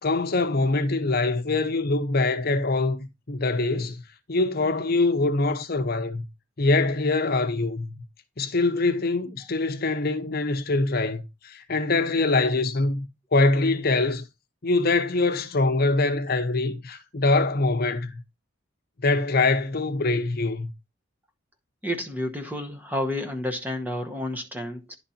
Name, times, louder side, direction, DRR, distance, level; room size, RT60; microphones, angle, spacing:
voice 1, 0.0-4.0 4.3-6.2 6.6-8.0 8.4-13.1 13.3-14.2 14.6-18.2 19.0-20.7, left 3 dB, 50° left, 0.8 m, -24 dB
voice 2, 21.8-25.0, left 1 dB, 10° right, 1.0 m, -30 dB
10.5 x 4.2 x 4.3 m
head